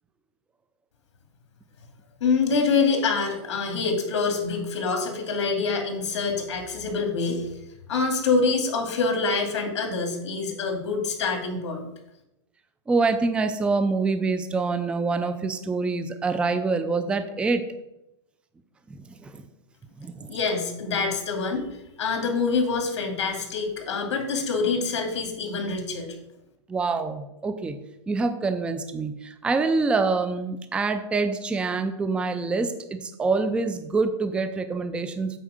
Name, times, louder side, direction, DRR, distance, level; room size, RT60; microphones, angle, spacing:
voice 1, 2.2-7.5 7.9-11.9 20.3-21.6 22.0-26.1, left 4 dB, 70° left, 3 dB, 2.4 m, -26 dB
voice 2, 12.9-17.7 18.9-19.4 20.0-20.4 26.7-27.8 28.1-35.4, right 4 dB, 5° right, 9 dB, 0.4 m, -26 dB
8.2 x 4.4 x 6.4 m, 0.88 s
hypercardioid pair, 145°, 15 cm